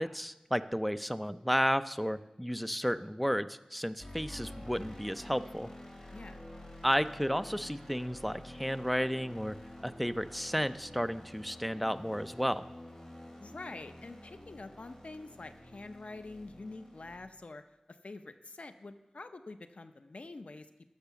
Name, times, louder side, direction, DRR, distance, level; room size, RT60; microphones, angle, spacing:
voice 1, 0.0-5.7 6.8-9.6 9.8-12.7, equal, ahead, 12 dB, 0.5 m, -32 dB
sound 1, 4.0-17.2, left 1 dB, 25° left, 2.9 m, -49 dB
voice 2, 6.1-6.4 13.4-17.6 17.9-20.7, left 3 dB, 75° left, 9 dB, 0.6 m, -46 dB
12.0 x 6.6 x 7.1 m, 0.95 s
wide cardioid pair, 60°, 2 cm